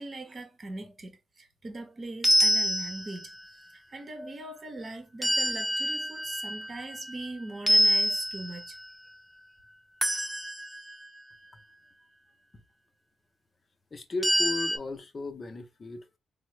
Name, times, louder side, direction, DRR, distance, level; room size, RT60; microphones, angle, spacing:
voice 1, 0.0-8.8, right 2 dB, 35° right, 0.8 m, -41 dB
sound 1, 2.2-3.4 5.2-7.3 7.7-8.9 10.0-11.1 14.2-14.8, equal, 5° right, 0.4 m, -26 dB
voice 2, 13.9-16.2, left 3 dB, 35° left, 0.7 m, -36 dB
3.5 x 2.0 x 3.2 m
cardioid pair, 90°, 0 cm